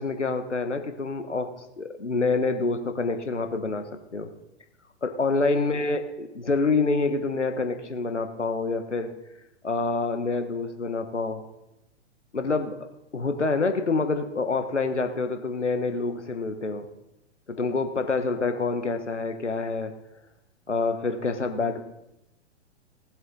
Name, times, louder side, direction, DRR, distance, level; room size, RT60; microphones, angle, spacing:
voice 1, 0.0-1.5 1.8-3.8 4.1-4.3 5.0-9.1 9.6-11.4 12.3-12.8 13.1-16.9 17.6-19.9 20.7-21.8, left 3 dB, 80° left, 7 dB, 1.5 m, -27 dB
19.0 x 7.7 x 4.1 m, 0.87 s
figure-of-eight pair, 115°, 35 cm